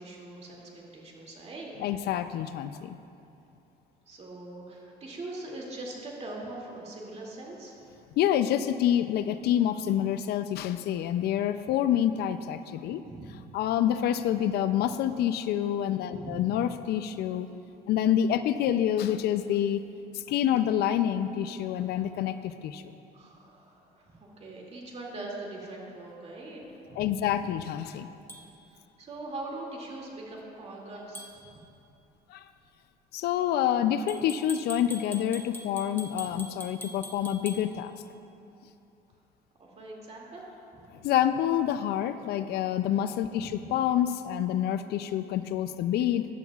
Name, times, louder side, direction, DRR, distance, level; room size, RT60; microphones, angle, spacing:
voice 1, 0.0-1.7 4.1-7.8 13.0-13.4 16.1-16.4 23.1-27.1 29.0-31.5 39.6-40.4 43.4-43.7, right 2 dB, 40° right, -2 dB, 2.4 m, -42 dB
voice 2, 1.8-3.0 8.2-13.0 13.5-17.5 17.9-19.8 20.3-22.8 27.0-28.1 32.3-32.5 33.1-37.9 41.0-46.3, left 10 dB, 70° left, 11 dB, 0.4 m, -27 dB
sound 1, 28.3-28.4 31.1-31.3 34.1-37.6, equal, 15° left, 1.0 m, -43 dB
15.0 x 11.0 x 2.4 m, 2.8 s
cardioid pair, 110°, 17 cm